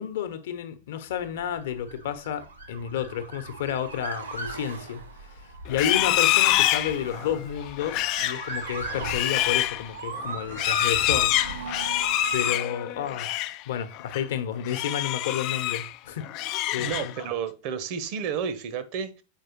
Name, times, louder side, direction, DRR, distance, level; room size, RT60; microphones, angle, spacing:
voice 1, 0.0-11.8 12.3-17.1, left 9 dB, 55° left, 0.9 m, -31 dB
Motor vehicle (road) / Siren, 1.4-12.5, right 3 dB, 70° right, 1.8 m, -38 dB
Livestock farm animals working animals, 5.7-13.6 13.9-14.2 14.6-15.9 16.2-17.3, left 15 dB, 40° left, 0.3 m, -26 dB
voice 2, 16.8-19.2, right 7 dB, 45° right, 0.9 m, -31 dB
7.3 x 4.8 x 3.0 m
figure-of-eight pair, 90°, 0 cm